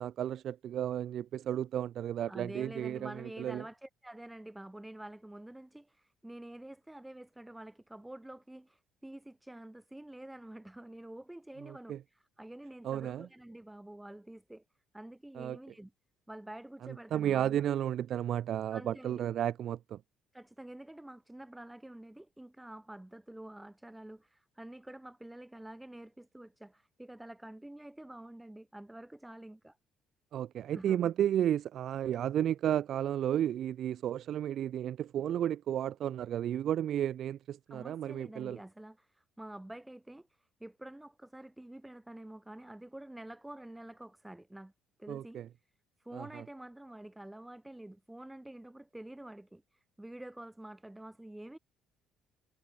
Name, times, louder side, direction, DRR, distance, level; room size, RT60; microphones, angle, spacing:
voice 1, 0.0-3.1 3.4-3.6 11.7-12.0 12.8-13.3 15.4-15.6 17.1-20.0 30.3-38.6 45.1-45.5 46.1-46.4, right 10 dB, 60° right, 0.4 m, -33 dB
voice 2, 2.3-14.6 14.9-15.9 16.3-17.7 18.7-19.2 20.3-29.8 30.7-31.0 37.7-44.7 45.0-45.4 46.0-51.6, right 1 dB, 10° right, 1.9 m, -48 dB
supercardioid pair, 75°, 0 cm